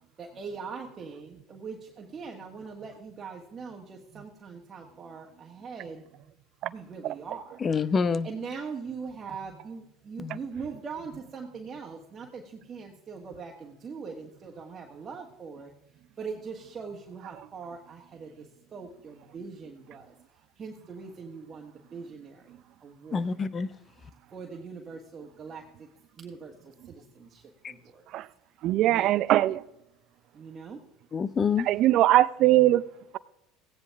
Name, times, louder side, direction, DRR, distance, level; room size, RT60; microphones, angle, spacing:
voice 1, 0.2-6.0 6.6-7.6 8.2-15.7 16.2-18.4 18.7-20.1 20.6-22.5 22.8-23.3 24.3-25.9 26.2-28.0 28.9-29.2 30.3-30.8, right 5 dB, 35° right, 1.6 m, -41 dB
voice 2, 7.6-8.3 10.2-10.4 23.1-23.7 31.1-31.7, left 5 dB, 35° left, 0.7 m, -26 dB
voice 3, 28.6-29.6 31.7-32.8, right 14 dB, 55° right, 0.5 m, -21 dB
16.5 x 9.8 x 3.5 m
hypercardioid pair, 80°, 0 cm